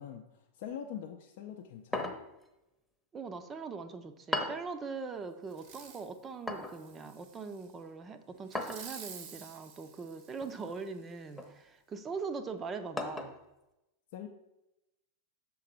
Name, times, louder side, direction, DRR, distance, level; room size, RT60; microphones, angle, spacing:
voice 1, 0.0-2.2 14.1-14.3, left 9 dB, 50° left, 2 dB, 0.5 m, -43 dB
sound 1, 1.9-2.5 4.3-4.7 6.5-6.8 8.5-8.9 10.4-10.8 11.4-11.6 13.0-13.4, left 2 dB, 5° left, 0.8 m, -36 dB
voice 2, 3.1-13.4, right 4 dB, 20° right, 9 dB, 0.6 m, -41 dB
Fireworks, 5.5-6.1 6.6-7.7 8.5-10.9 11.4-11.5, right 7 dB, 45° right, 0.8 m, -50 dB
6.5 x 3.9 x 5.7 m, 0.93 s
figure-of-eight pair, 90°, 0 cm